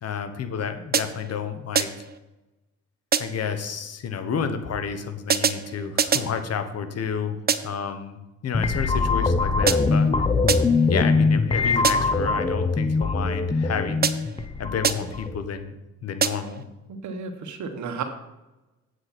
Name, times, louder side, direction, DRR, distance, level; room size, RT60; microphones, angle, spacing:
voice 1, 0.0-1.9 3.2-7.4 7.6-10.3 10.9-14.1 14.6-15.8 16.0-16.6, left 6 dB, 55° left, 9 dB, 1.2 m, -30 dB
sound 1, 0.9-1.4 1.8-2.2 3.1-3.5 5.3-6.4 7.5-7.9 9.7-10.1 10.5-10.9 11.8-12.3 14.0-14.5 14.8-15.3 16.2-16.6, right 6 dB, 30° right, 0.6 m, -26 dB
sound 2, 8.5-15.4, left 3 dB, 20° left, 0.6 m, -22 dB
voice 2, 17.0-18.0, right 5 dB, 70° right, 6 dB, 1.4 m, -32 dB
8.2 x 7.8 x 4.3 m, 1.0 s
cardioid pair, 90°, 30 cm